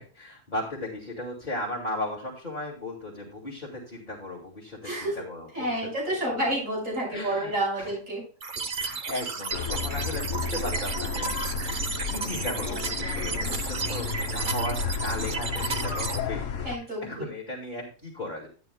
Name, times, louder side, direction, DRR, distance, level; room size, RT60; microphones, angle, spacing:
voice 1, 0.0-5.8 6.3-6.4 7.1-7.9 8.7-11.3 12.0-18.5, left 1 dB, 35° left, -5 dB, 2.4 m, -36 dB
voice 2, 4.8-5.2 5.5-8.2 16.6-17.2, right 1 dB, 75° right, -4 dB, 6.7 m, -29 dB
sound 1, 8.4-16.2, right 4 dB, 40° right, 1.0 m, -33 dB
sound 2, 9.5-16.8, left 5 dB, 65° left, 1.3 m, -32 dB
12.5 x 9.9 x 2.2 m, 0.38 s
omnidirectional pair, 1.4 m